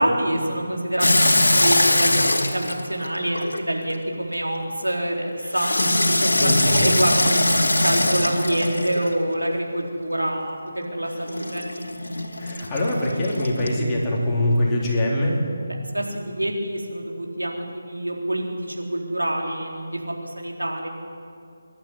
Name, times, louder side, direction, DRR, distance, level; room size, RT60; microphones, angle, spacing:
voice 1, 0.0-5.7 6.0-11.6 15.9-20.9, right 1 dB, 80° right, 0 dB, 4.0 m, -26 dB
Water tap faucet / Sink (filling or washing), 1.0-4.0 5.5-9.3 11.3-13.8, left 1 dB, 65° left, 2.5 m, -22 dB
voice 2, 6.4-6.9 12.4-15.5, left 1 dB, 15° left, -5 dB, 3.7 m, -23 dB
25.0 x 11.5 x 9.9 m, 2.4 s
figure-of-eight pair, 150°, 0 cm